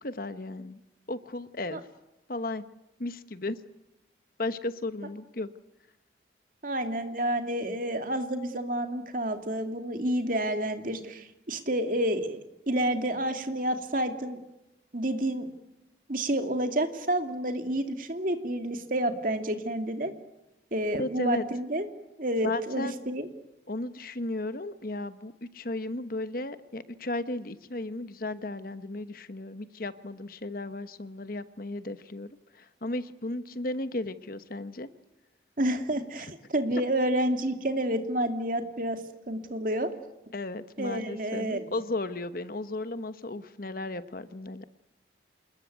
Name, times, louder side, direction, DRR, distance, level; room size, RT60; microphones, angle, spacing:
voice 1, 0.0-0.8 1.1-1.8 2.3-2.6 3.0-3.6 4.4-5.5 21.0-21.4 22.4-23.0 23.7-34.9 40.3-44.6, left 2 dB, 50° left, 12 dB, 1.1 m, -35 dB
voice 2, 6.6-14.4 14.9-15.5 16.1-20.1 20.7-21.9 22.2-23.3 35.6-39.0 39.3-39.9 40.8-41.7, right 1 dB, 45° right, 6 dB, 2.5 m, -29 dB
27.5 x 21.0 x 9.4 m, 0.94 s
head